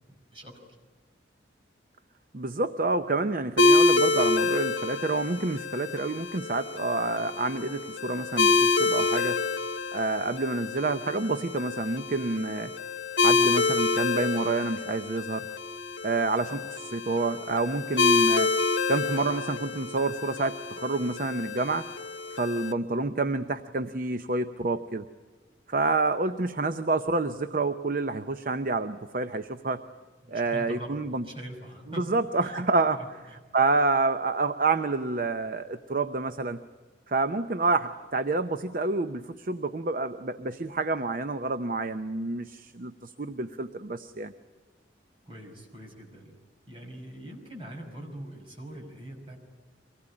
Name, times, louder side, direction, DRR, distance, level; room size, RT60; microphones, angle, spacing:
voice 1, 0.1-0.5 30.2-31.0 31.2-32.1 32.4-32.6 32.9-33.4 45.3-46.3 46.7-49.4, right 1 dB, 30° right, 1 dB, 5.5 m, -43 dB
voice 2, 2.3-9.5 9.9-12.7 13.2-15.5 16.0-18.5 18.9-21.9 22.3-25.1 25.7-29.8 30.3-31.2 31.9-33.0 33.5-36.6 37.1-44.3, right 3 dB, 45° right, 9 dB, 0.7 m, -28 dB
sound 1, 3.6-22.7, left 3 dB, 70° left, 1.5 m, -27 dB
24.5 x 19.0 x 9.8 m, 1.4 s
head